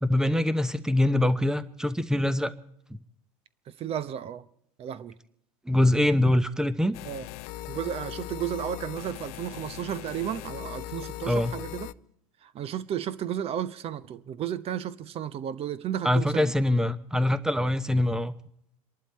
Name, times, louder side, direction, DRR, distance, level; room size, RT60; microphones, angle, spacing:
voice 1, 0.0-2.5 5.7-7.0 11.3-11.5 16.0-18.4, left 1 dB, 5° right, 0.8 m, -24 dB
voice 2, 3.7-4.5 4.8-5.1 7.0-7.3 7.7-11.9 12.4-16.5, right 10 dB, 35° right, 0.9 m, -33 dB
sound 1, 6.9-11.9, left 14 dB, 50° left, 0.5 m, -39 dB
27.5 x 11.5 x 4.3 m
figure-of-eight pair, 85°, 18 cm